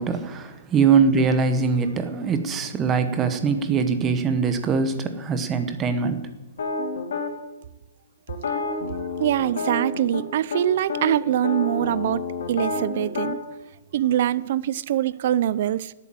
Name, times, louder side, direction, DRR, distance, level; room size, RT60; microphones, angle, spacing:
voice 1, 0.0-6.2, right 5 dB, 15° right, 1.1 m, -22 dB
sound 1, 6.6-7.3 8.3-10.2 10.5-10.6 10.9-13.4, left 4 dB, 75° left, 3.3 m, -29 dB
voice 2, 8.9-13.4 13.9-15.9, right 11 dB, 45° right, 0.6 m, -24 dB
18.5 x 8.4 x 7.8 m
hypercardioid pair, 170°, 0 cm